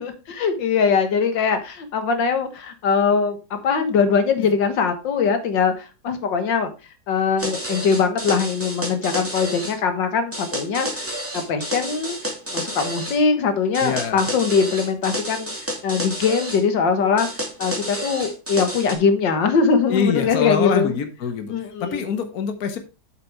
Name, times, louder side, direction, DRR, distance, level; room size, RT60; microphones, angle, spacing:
voice 1, 0.0-6.7 7.1-12.2 12.5-21.0 21.5-22.1, left 5 dB, 80° left, 8 dB, 2.0 m, -22 dB
sound 1, 7.4-9.8 10.3-13.2 13.7-16.6 17.2-18.9, equal, 5° right, 2.3 m, -30 dB
voice 2, 13.8-14.2 19.9-21.5 21.8-22.8, left 6 dB, 55° left, 7 dB, 1.7 m, -24 dB
8.0 x 6.8 x 4.6 m, 0.30 s
omnidirectional pair, 1.9 m